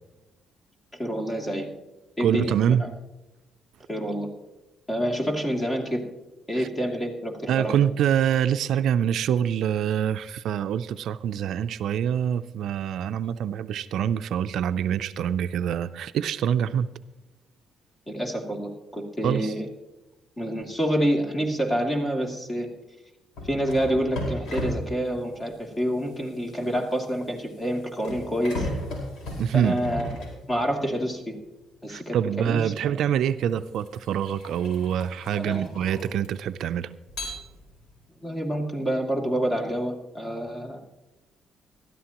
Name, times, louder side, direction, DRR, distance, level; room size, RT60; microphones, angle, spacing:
voice 1, 0.9-1.7 2.2-2.8 3.9-4.3 4.9-6.1 6.5-7.8 18.1-19.7 20.4-22.7 23.4-28.7 29.5-31.3 31.8-33.0 35.3-35.6 38.2-40.8, equal, 20° left, 1 dB, 2.7 m, -28 dB
voice 2, 2.2-2.8 6.5-6.7 7.5-16.9 19.2-19.5 29.4-29.8 31.9-36.9, right 9 dB, 75° right, 12 dB, 0.4 m, -25 dB
sound 1, 23.3-30.9 32.3-32.5 33.2-36.6 37.1-38.0, left 1 dB, 80° left, 4.6 m, -36 dB
19.0 x 13.0 x 3.0 m, 1.1 s
cardioid pair, 90°, 0 cm